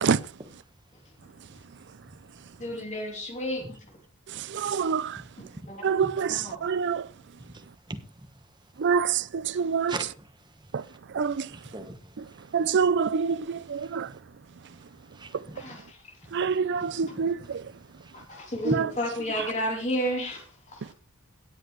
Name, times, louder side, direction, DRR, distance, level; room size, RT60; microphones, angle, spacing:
voice 1, 2.6-3.8 5.7-5.9 6.3-6.6 15.5-16.0 18.1-20.9, equal, 35° left, 2.9 m, -32 dB
voice 2, 4.3-5.2 5.8-7.1 8.8-9.9 10.7-10.8 11.1-11.5 12.5-14.1 16.3-17.6 18.6-18.9, right 6 dB, 55° right, 0.5 m, -26 dB
voice 3, 7.4-8.0 9.9-10.3 10.8-11.0 11.5-12.7 13.8-14.1 15.1-15.6 16.4-16.5 16.8-17.6 18.0-18.4 18.7-18.8, right 2 dB, 20° right, 1.2 m, -40 dB
17.5 x 7.9 x 3.1 m
head